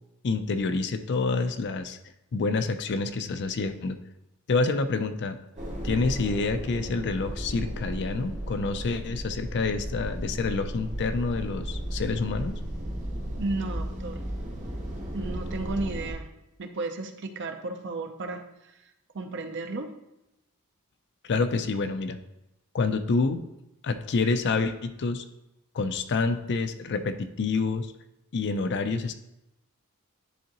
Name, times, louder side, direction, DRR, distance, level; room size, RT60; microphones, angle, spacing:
voice 1, 0.2-2.0 2.3-4.0 4.5-5.4 5.8-12.6 21.2-22.2 22.7-23.4 23.8-25.2 25.7-27.9 28.3-29.1, left 4 dB, 50° left, 9 dB, 0.5 m, -27 dB
sound 1, 5.6-16.1, right 1 dB, 35° right, 1.2 m, -35 dB
voice 2, 13.4-14.2 15.1-16.3 16.6-18.4 19.1-19.9, right 3 dB, 55° right, 6 dB, 0.6 m, -33 dB
10.0 x 3.7 x 3.0 m, 0.90 s
head